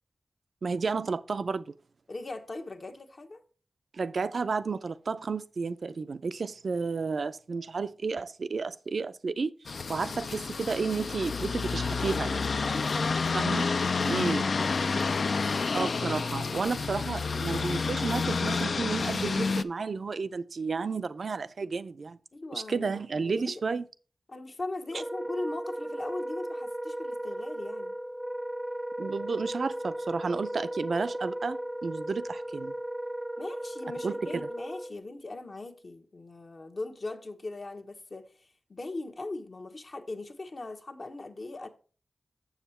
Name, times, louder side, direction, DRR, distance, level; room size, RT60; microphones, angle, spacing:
voice 1, 0.6-1.6 3.9-12.5 13.3-13.7 14.1-14.4 15.7-22.2 22.5-23.8 29.0-32.7 34.0-34.5, right 4 dB, 75° right, 0.4 m, -32 dB
voice 2, 2.1-3.4 12.6-13.2 13.8-16.0 22.3-23.0 23.3-23.5 24.3-27.9 33.4-38.3 38.7-41.7, left 2 dB, 60° left, 1.0 m, -40 dB
sound 1, 9.7-19.6, left 4 dB, 75° left, 0.4 m, -29 dB
Wind instrument woodwind instrument, 24.9-35.0, right 1 dB, 10° right, 0.5 m, -36 dB
7.2 x 7.0 x 4.2 m
wide cardioid pair, 65°, 0 cm